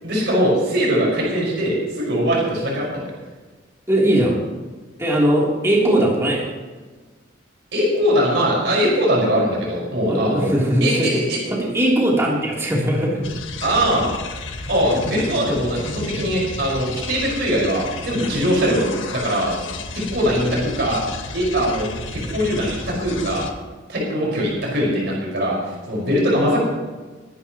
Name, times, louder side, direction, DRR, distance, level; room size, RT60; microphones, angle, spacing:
voice 1, 0.0-3.0 7.7-10.5 10.8-11.4 13.6-14.1 14.7-19.5 20.1-21.0 21.3-23.4 23.9-26.6, equal, 60° right, -3 dB, 5.1 m, -21 dB
voice 2, 3.9-4.4 5.0-6.5 10.0-11.1 11.5-13.3 20.2-20.7, right 1 dB, 15° right, -4 dB, 3.2 m, -19 dB
sound 1, 13.2-23.5, left 3 dB, 90° left, 1.6 m, -32 dB
22.5 x 11.5 x 3.0 m, 1.3 s
head